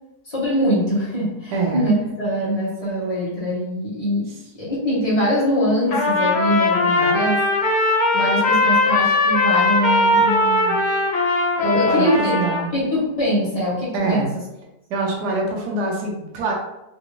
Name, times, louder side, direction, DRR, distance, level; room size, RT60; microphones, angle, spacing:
voice 1, 0.2-4.3 4.5-7.4 8.1-10.8 11.6-12.4 12.7-14.4, equal, 30° left, -8 dB, 0.8 m, -23 dB
voice 2, 1.5-1.8 11.9-12.7 13.9-14.3 14.9-16.5, right 3 dB, 85° right, -1 dB, 1.2 m, -24 dB
Trumpet, 5.9-12.7, left 2 dB, 60° left, 1.2 m, -19 dB
3.3 x 2.6 x 3.0 m, 0.90 s
omnidirectional pair, 1.7 m